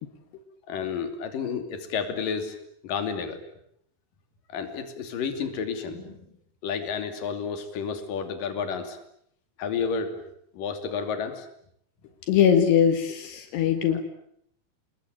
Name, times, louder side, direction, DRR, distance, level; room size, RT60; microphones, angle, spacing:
voice 1, 0.7-2.6 2.8-3.4 4.5-6.3 6.6-9.0 9.6-10.2 10.5-11.5 13.8-14.0, left 6 dB, 55° left, 7 dB, 4.2 m, -31 dB
voice 2, 12.3-14.0, left 8 dB, 75° left, 7 dB, 3.8 m, -21 dB
28.5 x 21.0 x 9.0 m, 0.71 s
omnidirectional pair, 4.9 m